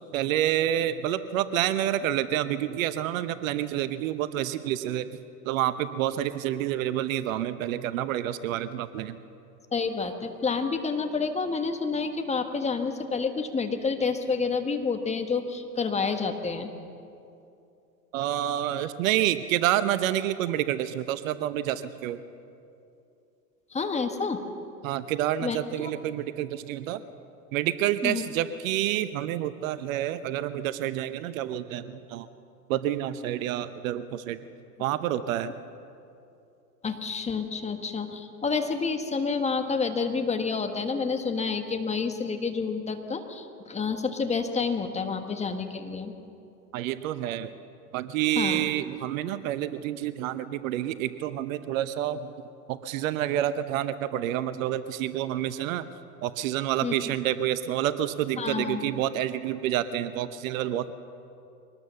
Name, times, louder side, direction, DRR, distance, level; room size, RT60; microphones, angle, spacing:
voice 1, 0.1-5.1 5.4-9.2 18.1-22.2 24.8-27.0 27.5-32.3 32.7-34.4 34.8-35.5 46.7-47.6 47.9-52.3 52.7-55.9 56.2-60.9, right 12 dB, 55° right, 13 dB, 1.0 m, -28 dB
voice 2, 9.7-16.7 23.7-24.4 25.4-25.9 28.0-28.2 36.8-46.1 48.3-48.7 56.8-56.9 58.4-58.9, left 4 dB, 15° left, 6 dB, 1.5 m, -29 dB
23.5 x 19.5 x 7.0 m, 2.7 s
hypercardioid pair, 110°, 49 cm